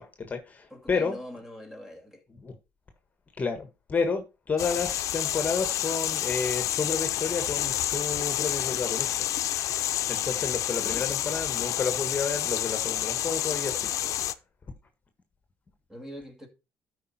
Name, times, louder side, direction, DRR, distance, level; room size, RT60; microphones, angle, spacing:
voice 1, 0.0-1.2 2.4-2.5 3.4-9.1 10.1-13.9, left 5 dB, 30° left, 1.5 m, -31 dB
voice 2, 0.7-2.2 10.8-11.3 15.9-16.5, equal, 10° right, 2.5 m, -43 dB
sound 1, 4.6-14.3, left 12 dB, 70° left, 0.7 m, -29 dB
12.5 x 5.0 x 4.3 m
cardioid pair, 110°, 6 cm